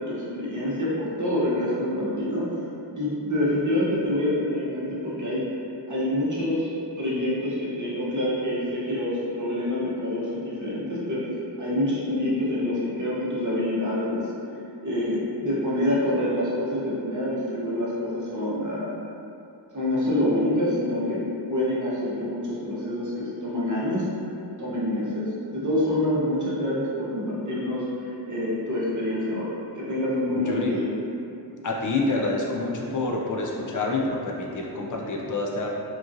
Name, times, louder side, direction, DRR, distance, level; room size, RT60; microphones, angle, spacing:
voice 1, 0.0-2.4 3.0-5.4 5.9-6.7 7.0-11.2 11.6-14.2 14.8-18.9 19.7-21.2 21.5-24.1 24.6-30.8, left 1 dB, 45° right, -7 dB, 0.8 m, -26 dB
voice 2, 30.4-30.7 31.6-35.7, left 2 dB, 45° left, -2 dB, 0.4 m, -27 dB
2.9 x 2.4 x 2.6 m, 2.7 s
wide cardioid pair, 80°, 44 cm